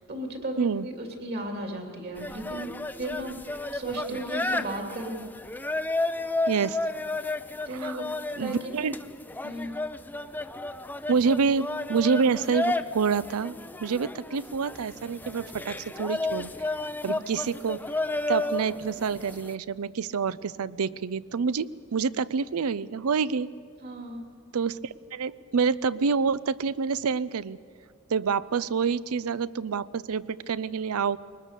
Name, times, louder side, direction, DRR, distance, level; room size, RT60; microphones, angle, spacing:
voice 1, 0.1-2.7 3.0-3.4 3.7-5.3 7.7-8.1 8.4-8.7 9.4-9.8 17.0-17.2 23.8-24.2, right 1 dB, 50° right, 3 dB, 2.9 m, -35 dB
sound 1, 2.2-19.5, left 2 dB, 10° left, 0.5 m, -32 dB
voice 2, 6.5-6.8 7.7-8.0 8.4-9.0 11.1-16.5 17.0-17.8 18.3-23.5 24.5-27.6 28.1-31.2, right 5 dB, 85° right, 18 dB, 0.5 m, -27 dB
21.5 x 20.0 x 6.8 m, 2.1 s
head